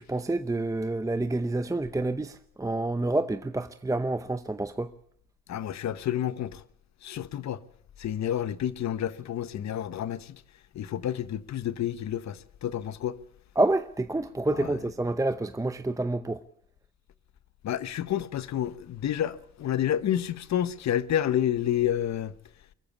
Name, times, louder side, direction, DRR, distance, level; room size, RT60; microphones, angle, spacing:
voice 1, 0.0-4.9 13.6-16.4, right 2 dB, 10° right, 0.8 m, -28 dB
voice 2, 5.5-6.6 7.0-7.6 8.0-10.4 10.7-13.2 14.5-14.8 17.6-22.3, left 10 dB, 65° left, 1.1 m, -29 dB
24.0 x 14.5 x 8.2 m
cardioid pair, 90°, 30 cm